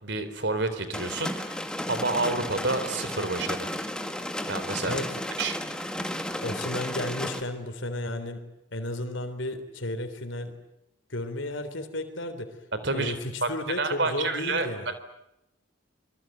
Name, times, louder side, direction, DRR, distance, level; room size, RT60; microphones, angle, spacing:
voice 1, 0.0-3.7 4.5-5.0 5.4-5.6 12.8-13.1 13.4-13.5 13.8-14.7, right 3 dB, 60° right, 11 dB, 3.6 m, -29 dB
sound 1, 0.9-7.4, left 1 dB, 5° left, 1.9 m, -33 dB
voice 2, 6.4-8.4 8.7-10.6 11.1-12.6 12.9-15.0, left 1 dB, 70° left, 8 dB, 3.7 m, -33 dB
26.0 x 23.5 x 9.3 m, 0.85 s
head